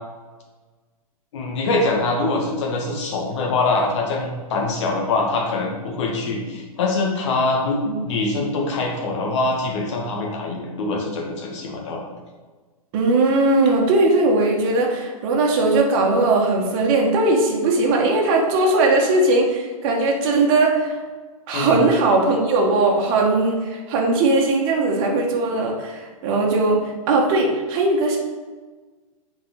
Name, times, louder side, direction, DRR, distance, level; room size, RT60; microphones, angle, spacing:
voice 1, 1.3-7.8 8.0-12.0 21.5-21.8, left 3 dB, 50° left, 0 dB, 1.7 m, -23 dB
voice 2, 12.9-21.0 21.5-28.2, right 2 dB, 40° right, 0 dB, 1.5 m, -19 dB
7.5 x 4.8 x 4.3 m, 1.3 s
figure-of-eight pair, 110°, 19 cm